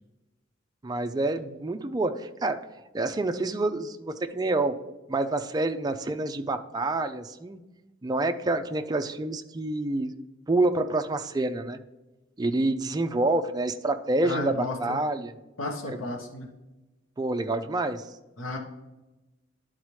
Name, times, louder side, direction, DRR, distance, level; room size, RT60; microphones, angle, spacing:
voice 1, 0.8-2.7 2.9-4.8 5.1-7.6 8.0-10.1 10.5-11.8 12.4-15.3 15.8-16.0 17.2-18.1, right 2 dB, 20° right, 7 dB, 0.3 m, -27 dB
voice 2, 14.2-15.0 15.6-16.5 18.4-18.6, left 2 dB, 80° left, 2 dB, 1.0 m, -33 dB
11.0 x 4.1 x 3.1 m, 1.1 s
head